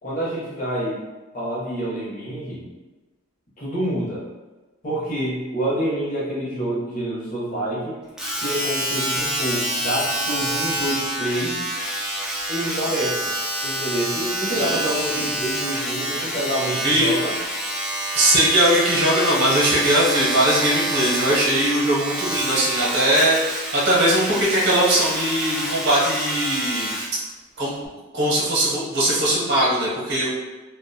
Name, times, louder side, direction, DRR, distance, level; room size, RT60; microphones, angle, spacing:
voice 1, 0.0-1.0 1.3-2.7 3.6-4.2 4.8-8.0 8.4-11.6 12.5-13.2 13.6-17.3 22.8-22.9, right 1 dB, 35° left, -6 dB, 0.8 m, -27 dB
Domestic sounds home sounds, 8.2-27.2 27.9-28.0, right 1 dB, 5° right, 0.3 m, -27 dB
voice 2, 14.6-15.3 16.8-17.1 18.1-26.9 27.6-27.8 28.1-30.3, right 1 dB, 50° right, -5 dB, 0.8 m, -20 dB
2.5 x 2.1 x 2.6 m, 1.2 s
head